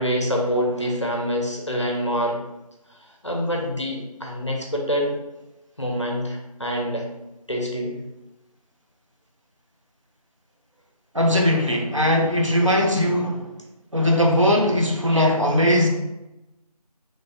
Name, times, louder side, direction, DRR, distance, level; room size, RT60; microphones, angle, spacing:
voice 1, 0.0-2.4 3.2-5.1 5.8-7.1 7.5-8.0 15.1-15.3, equal, 50° left, 0 dB, 0.5 m, -26 dB
voice 2, 11.1-13.5 13.9-15.9, left 1 dB, 55° right, 0 dB, 0.5 m, -19 dB
3.0 x 2.1 x 2.5 m, 0.97 s
figure-of-eight pair, 180°, 20 cm